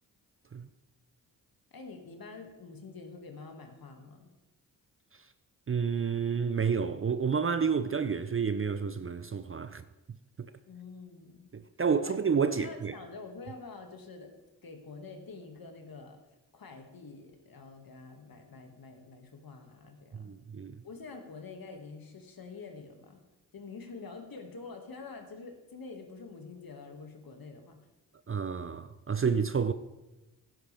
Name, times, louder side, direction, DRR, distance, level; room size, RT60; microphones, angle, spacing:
voice 1, 1.7-4.3 10.7-11.5 12.0-12.2 12.4-14.4 14.6-16.2 16.5-20.3 20.8-23.2 23.5-27.8, left 4 dB, 50° left, 2.3 m, -47 dB
voice 2, 5.7-9.8 10.4-10.5 11.5-12.9 20.1-20.8 28.3-29.7, right 6 dB, 30° right, 0.6 m, -30 dB
16.0 x 10.0 x 3.5 m
supercardioid pair, 40°, 45 cm